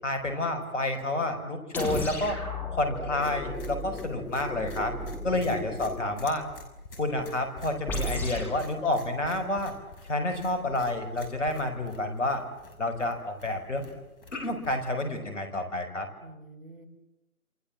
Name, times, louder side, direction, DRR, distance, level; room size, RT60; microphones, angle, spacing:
voice 1, 0.0-2.4 2.7-4.9 5.2-6.4 7.0-9.7 10.1-12.4 12.8-13.9 14.3-16.1, left 2 dB, 55° left, 7 dB, 5.9 m, -29 dB
sound 1, 1.7-6.0 7.9-8.6, left 1 dB, 5° left, 3.3 m, -34 dB
sound 2, 3.2-15.2, left 3 dB, 40° left, 5.9 m, -48 dB
voice 2, 5.5-6.1 16.2-16.9, right 2 dB, 40° right, 7 dB, 4.5 m, -49 dB
28.0 x 27.5 x 7.6 m, 0.95 s
figure-of-eight pair, 150°, 43 cm